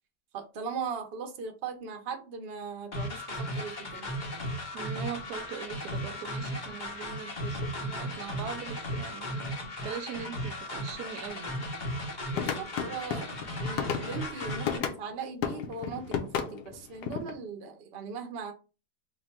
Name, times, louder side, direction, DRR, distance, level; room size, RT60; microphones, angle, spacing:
voice 1, 0.3-4.1 12.3-18.5, right 5 dB, 50° right, 0.7 m, -39 dB
sound 1, 2.9-14.8, equal, 45° left, 0.6 m, -36 dB
voice 2, 4.7-9.4 9.8-11.7, right 7 dB, 75° right, 1.1 m, -41 dB
sound 2, 12.3-15.0 15.4-17.3, left 7 dB, 75° left, 1.2 m, -33 dB
3.7 x 2.2 x 4.3 m
omnidirectional pair, 1.8 m